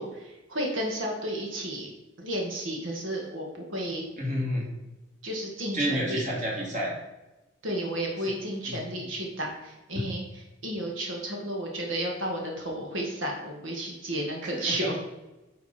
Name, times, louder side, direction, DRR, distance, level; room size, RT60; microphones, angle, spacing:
voice 1, 0.0-1.9 2.2-4.0 5.2-6.2 7.6-15.0, right 1 dB, 85° right, 0 dB, 1.9 m, -32 dB
voice 2, 4.2-4.7 5.7-6.9 8.7-8.8 14.5-14.9, equal, 40° right, -3 dB, 2.7 m, -29 dB
9.9 x 5.5 x 4.4 m, 1.1 s
head